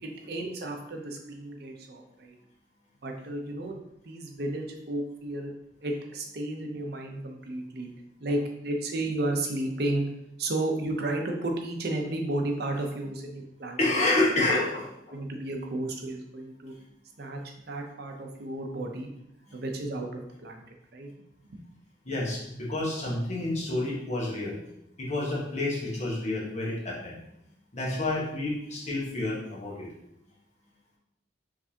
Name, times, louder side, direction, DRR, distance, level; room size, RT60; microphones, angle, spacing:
voice 1, 0.0-2.4 3.0-3.8 4.1-5.5 5.8-7.9 8.2-10.1 10.4-13.8 15.1-16.7 17.2-17.4 17.7-19.1 19.5-20.6 20.9-21.1 21.5-21.7 22.1-22.2, right 1 dB, 65° right, 2 dB, 0.7 m, -33 dB
voice 2, 13.8-15.2 19.5-19.6 22.0-24.6 25.0-27.2 27.7-29.9, left 2 dB, 40° left, -4 dB, 1.2 m, -29 dB
4.9 x 3.4 x 2.8 m, 0.80 s
head